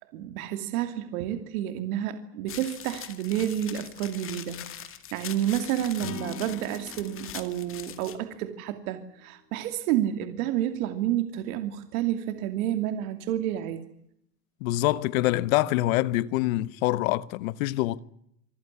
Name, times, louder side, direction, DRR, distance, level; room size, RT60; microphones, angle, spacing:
voice 1, 0.1-13.8, right 11 dB, 60° right, 2.7 m, -30 dB
sound 1, 2.5-8.2, left 10 dB, 25° left, 2.2 m, -42 dB
Acoustic guitar / Strum, 6.0-9.3, left 3 dB, 75° left, 6.3 m, -43 dB
voice 2, 14.6-18.0, left 17 dB, 55° left, 1.2 m, -25 dB
26.0 x 16.0 x 9.7 m
supercardioid pair, 140°, 49 cm